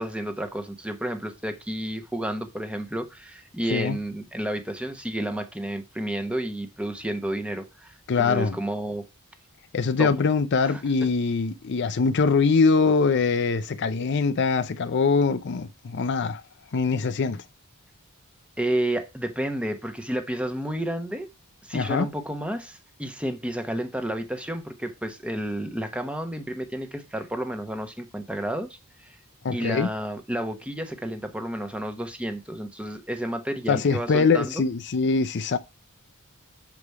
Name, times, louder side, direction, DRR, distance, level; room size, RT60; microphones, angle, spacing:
voice 1, 0.0-9.0 10.0-10.1 10.6-11.1 18.6-21.3 21.6-29.2 29.5-34.6, right 1 dB, 5° right, 1.0 m, -31 dB
voice 2, 8.1-8.6 9.7-16.4 16.7-17.4 21.7-22.1 29.4-29.9 33.7-35.6, left 4 dB, 50° left, 0.5 m, -23 dB
6.9 x 5.0 x 4.7 m
head